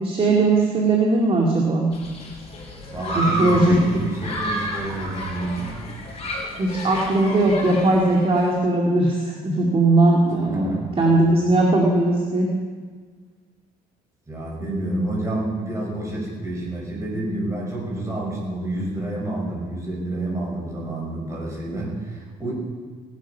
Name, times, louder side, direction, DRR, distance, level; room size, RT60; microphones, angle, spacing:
voice 1, 0.0-1.9 3.1-4.0 6.6-12.5, right 2 dB, 35° right, -1 dB, 2.3 m, -19 dB
Human group actions, 1.9-8.5, equal, 35° left, 4.5 m, -31 dB
voice 2, 2.9-5.8 10.5-11.0 14.3-22.5, right 1 dB, 20° right, -3 dB, 6.2 m, -29 dB
17.5 x 11.5 x 5.6 m, 1.5 s
cardioid pair, 110°, 17 cm